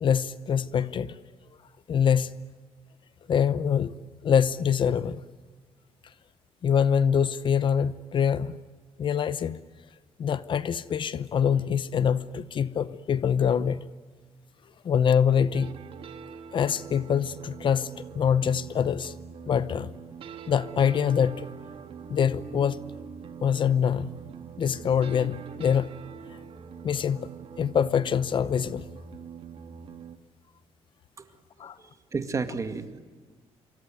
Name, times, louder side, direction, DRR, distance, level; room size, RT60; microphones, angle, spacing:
voice 1, 0.0-1.2 1.9-2.4 3.3-3.9 4.2-5.2 6.6-8.6 9.0-9.6 10.2-13.8 14.8-15.8 16.5-19.1 19.5-19.9 20.5-21.5 22.1-22.8 23.4-24.1 24.6-25.9 26.8-27.3 27.6-28.9 31.6-31.8, left 7 dB, 45° left, 0.8 m, -24 dB
sound 1, 15.5-30.2, right 6 dB, 55° right, 1.6 m, -43 dB
voice 2, 31.8-33.0, right 4 dB, 30° right, 2.2 m, -32 dB
27.0 x 23.5 x 9.2 m
cardioid pair, 145°, 11 cm